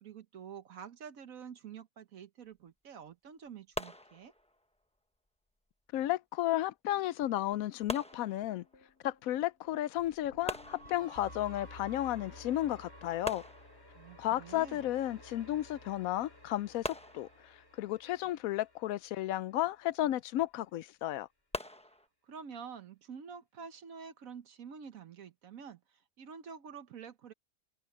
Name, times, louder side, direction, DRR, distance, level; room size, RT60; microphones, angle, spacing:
voice 1, 0.0-4.3 13.9-14.9 22.2-27.3, right 7 dB, 70° right, 1.4 m, -48 dB
sound 1, 3.8-4.7 7.9-8.9 10.5-11.5 13.2-14.2 16.8-17.8 21.5-22.1, left 1 dB, 5° left, 0.9 m, -42 dB
voice 2, 5.9-8.6 9.0-13.4 14.2-21.3, left 13 dB, 80° left, 1.0 m, -33 dB
sound 2, 7.2-19.4, left 1 dB, 45° left, 8.1 m, -54 dB
omnidirectional pair, 1.5 m